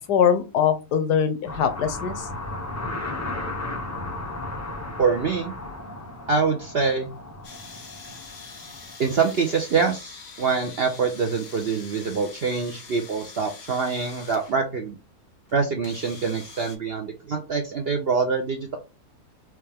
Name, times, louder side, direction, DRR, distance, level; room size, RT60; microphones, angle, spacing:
voice 1, 0.1-2.3, left 8 dB, 80° left, 8 dB, 1.3 m, -22 dB
sound 1, 1.5-8.9, left 2 dB, 20° left, 0.4 m, -35 dB
voice 2, 5.0-5.5 6.3-7.1 9.0-15.0 15.5-18.8, right 5 dB, 60° right, 4 dB, 0.6 m, -25 dB
sound 2, 7.4-14.6 15.5-15.6 15.8-16.8, left 5 dB, 65° left, 1.5 m, -44 dB
4.4 x 3.2 x 3.4 m, 0.29 s
omnidirectional pair, 1.7 m